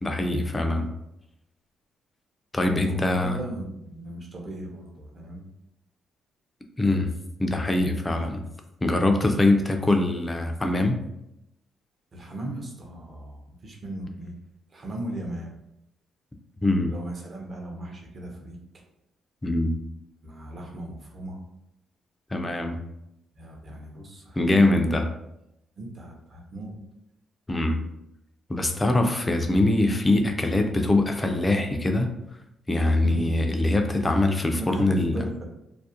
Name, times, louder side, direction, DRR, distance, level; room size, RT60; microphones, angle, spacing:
voice 1, 0.0-0.9 2.5-3.4 6.8-7.1 7.4-8.5 8.8-11.0 16.6-16.9 19.4-19.7 22.3-22.8 24.4-25.1 27.5-27.8 28.5-32.1 32.7-35.2, left 2 dB, 20° left, 4 dB, 0.3 m, -23 dB
voice 2, 2.8-5.4 12.1-14.4 14.7-15.5 16.8-18.6 20.2-21.4 23.3-24.4 25.8-26.7 33.0-33.3 34.6-35.5, right 1 dB, 40° right, 0 dB, 0.6 m, -37 dB
2.4 x 2.0 x 2.7 m, 0.83 s
cardioid pair, 90°, 0 cm